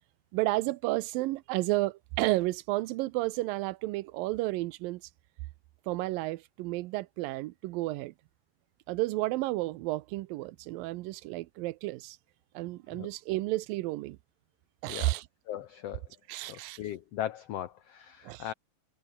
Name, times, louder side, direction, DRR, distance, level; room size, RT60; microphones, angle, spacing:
voice 1, 0.3-5.0 5.9-8.1 8.9-12.2 12.5-14.2 14.8-15.2 16.3-16.8 18.2-18.5, right 19 dB, 85° right, 2.4 m, -32 dB
voice 2, 14.9-15.2 15.5-16.1 16.5-18.5, left 11 dB, 85° left, 1.3 m, -38 dB
omnidirectional pair, 4.0 m